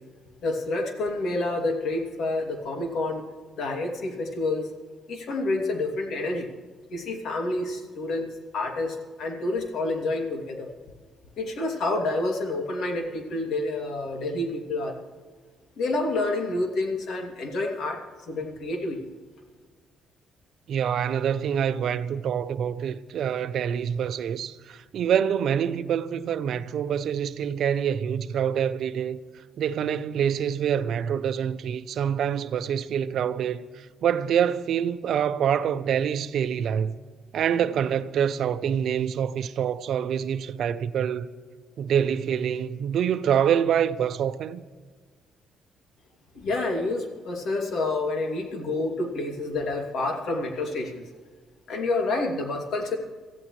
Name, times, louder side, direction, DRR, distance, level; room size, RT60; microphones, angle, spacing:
voice 1, 0.4-3.2 3.6-4.7 5.1-6.5 6.9-10.7 11.4-14.9 15.8-18.0 18.3-19.0 46.3-51.0 51.7-53.0, left 2 dB, 70° left, 2.7 m, -28 dB
voice 2, 20.7-29.2 29.6-33.7 34.0-37.0 37.3-41.3 41.8-44.6, right 8 dB, 70° right, 0.7 m, -26 dB
23.5 x 14.5 x 3.3 m
cardioid pair, 85°, 0 cm